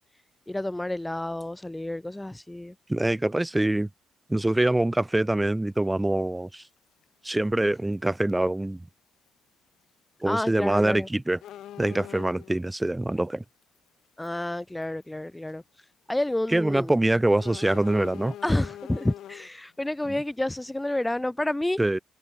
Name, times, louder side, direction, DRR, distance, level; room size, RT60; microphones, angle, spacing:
voice 1, 0.5-2.7 10.2-11.1 14.2-15.6 16.1-16.9 18.4-21.8, left 1 dB, 10° left, 2.8 m, -29 dB
voice 2, 2.9-3.9 4.3-6.6 7.2-8.8 10.2-11.4 11.8-13.4 16.5-18.3 21.8-22.0, right 1 dB, 10° right, 4.0 m, -24 dB
sound 1, 5.7-5.8 7.4-7.6 7.9-8.0 8.3-8.4 10.3-10.6 10.9-11.0 11.4-12.6 13.6-13.8 14.2-14.3 14.8-15.0 15.5-15.6 17.4-19.5, left 12 dB, 75° left, 4.6 m, -43 dB
cardioid pair, 90°, 0 cm